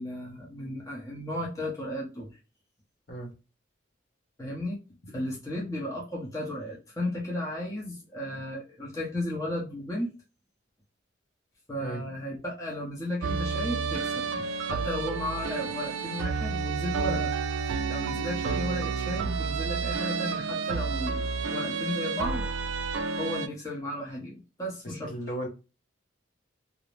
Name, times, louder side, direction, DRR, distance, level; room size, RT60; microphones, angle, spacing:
voice 1, 0.0-2.3 4.4-4.8 5.1-10.1 11.7-14.3 14.6-17.3 17.9-22.4 23.2-25.1, left 1 dB, 15° left, -3 dB, 0.6 m, -34 dB
sound 1, 13.2-23.5, right 5 dB, 75° right, 0.3 m, -30 dB
voice 2, 24.8-25.5, right 1 dB, 45° left, 1 dB, 0.8 m, -35 dB
2.4 x 2.0 x 3.1 m, 0.30 s
head